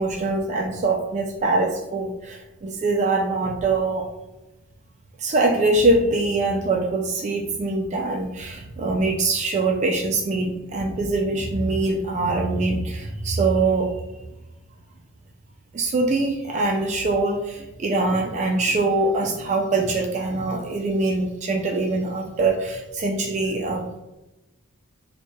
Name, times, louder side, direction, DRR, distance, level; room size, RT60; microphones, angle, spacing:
voice 1, 0.0-4.1 5.2-13.9 15.7-24.0, right 2 dB, 35° right, 2 dB, 0.3 m, -23 dB
3.0 x 2.2 x 4.2 m, 1.0 s
head